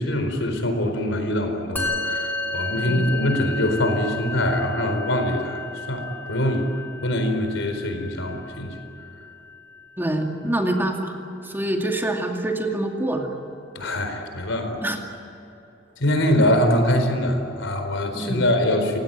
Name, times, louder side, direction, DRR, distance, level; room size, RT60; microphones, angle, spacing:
voice 1, 0.0-5.6 5.9-6.7 7.0-8.8 13.7-14.8 16.0-19.0, left 1 dB, 75° left, 6 dB, 4.4 m, -23 dB
Musical instrument, 1.8-11.3, left 3 dB, 10° left, 3.0 m, -33 dB
voice 2, 10.0-11.2 11.4-13.3 14.8-15.0 18.1-18.4, right 1 dB, 10° right, 1 dB, 2.4 m, -25 dB
29.5 x 16.5 x 9.1 m, 3.0 s
head